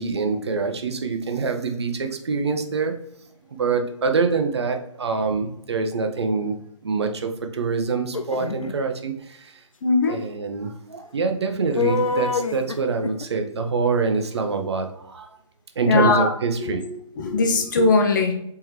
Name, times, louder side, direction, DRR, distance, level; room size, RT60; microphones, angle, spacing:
voice 1, 0.0-3.0 3.5-6.5 6.8-9.6 10.1-15.3 15.8-16.9, right 4 dB, 55° right, 5 dB, 0.7 m, -25 dB
sound 1, 8.1-8.7 11.8-13.3, left 4 dB, 80° left, 0.5 m, -25 dB
voice 2, 9.8-10.2 15.9-16.3 16.6-18.3, left 3 dB, 35° left, 3 dB, 0.8 m, -20 dB
4.3 x 3.7 x 3.0 m, 0.76 s
figure-of-eight pair, 135°, 17 cm